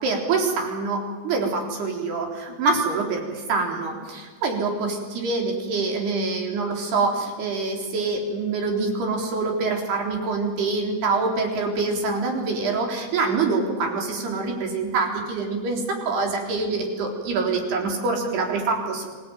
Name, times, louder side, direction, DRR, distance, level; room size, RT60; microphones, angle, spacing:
voice 1, 0.0-19.1, right 3 dB, 70° right, 1 dB, 5.8 m, -25 dB
26.0 x 18.0 x 9.2 m, 1.5 s
omnidirectional pair, 4.9 m